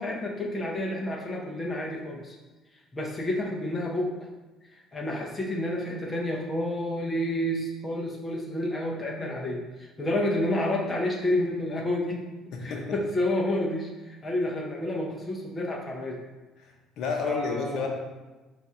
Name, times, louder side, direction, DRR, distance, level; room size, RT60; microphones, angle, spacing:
voice 1, 0.0-2.4 2.9-4.1 4.7-12.2 12.6-16.2 17.2-17.9, left 1 dB, 20° left, -2 dB, 0.5 m, -29 dB
voice 2, 12.5-13.0 16.6-17.9, left 4 dB, 60° left, 2 dB, 0.7 m, -31 dB
4.0 x 2.4 x 4.2 m, 1.2 s
cardioid pair, 155°, 0 cm